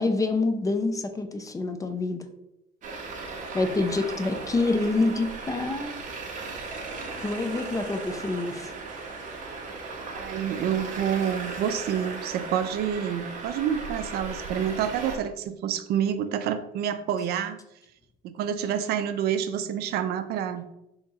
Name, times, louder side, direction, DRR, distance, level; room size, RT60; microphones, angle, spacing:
voice 1, 0.0-2.2 3.5-5.9 7.2-8.7, left 3 dB, 20° left, 7 dB, 0.4 m, -27 dB
Traffic noise roadway noise, 2.8-15.2, right 3 dB, 50° right, 0.9 m, -37 dB
voice 2, 10.1-17.6 18.2-20.7, right 9 dB, 70° right, 11 dB, 0.4 m, -28 dB
4.0 x 2.8 x 3.5 m, 0.86 s
cardioid pair, 110°, 17 cm